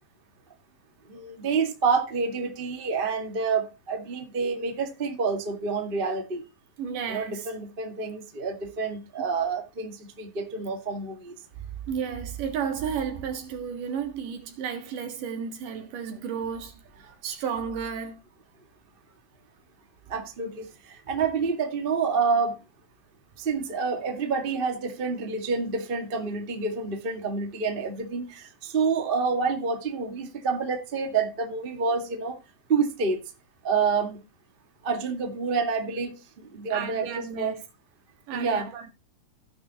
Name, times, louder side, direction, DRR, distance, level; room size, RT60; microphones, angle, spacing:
voice 1, 1.1-6.4 7.1-11.4 20.1-22.6 23.4-32.4 32.7-33.2 33.6-34.2 34.8-36.2 36.5-37.5 38.3-38.7, right 5 dB, 30° right, 0.9 m, -28 dB
voice 2, 6.8-7.5 9.2-9.3 11.9-18.2 36.7-37.6 38.3-38.9, right 7 dB, 70° right, 3.1 m, -33 dB
16.5 x 6.3 x 2.9 m
omnidirectional pair, 4.1 m